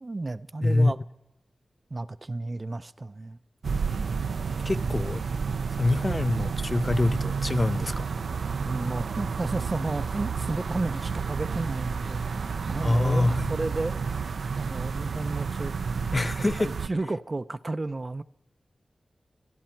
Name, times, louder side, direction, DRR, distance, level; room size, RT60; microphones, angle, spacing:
voice 1, 0.0-1.0 1.9-3.4 4.7-5.0 8.6-14.0 14.5-15.7 16.4-18.2, right 2 dB, 35° right, 0.5 m, -33 dB
voice 2, 0.6-0.9 4.6-5.2 5.8-8.1 12.8-13.5 16.1-16.7, left 2 dB, 30° left, 0.5 m, -25 dB
sound 1, 3.6-16.9, right 5 dB, 80° right, 0.5 m, -30 dB
26.0 x 11.5 x 4.5 m
wide cardioid pair, 80°, 0 cm